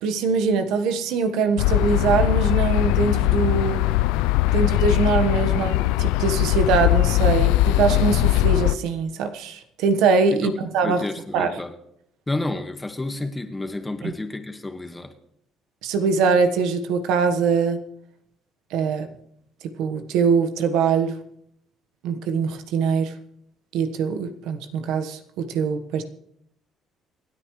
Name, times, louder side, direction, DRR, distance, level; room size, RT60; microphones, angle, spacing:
voice 1, 0.0-3.9 4.5-11.0 11.3-11.5 14.0-14.1 15.8-17.8 18.7-19.1 19.6-21.2 22.0-23.1 23.7-26.0, right 5 dB, 80° right, 1.3 m, -22 dB
sound 1, 1.6-8.8, left 17 dB, 90° left, 0.4 m, -20 dB
voice 2, 10.8-11.7 12.3-15.1, left 2 dB, 15° left, 1.6 m, -30 dB
27.0 x 9.6 x 3.2 m
cardioid pair, 90°, 0 cm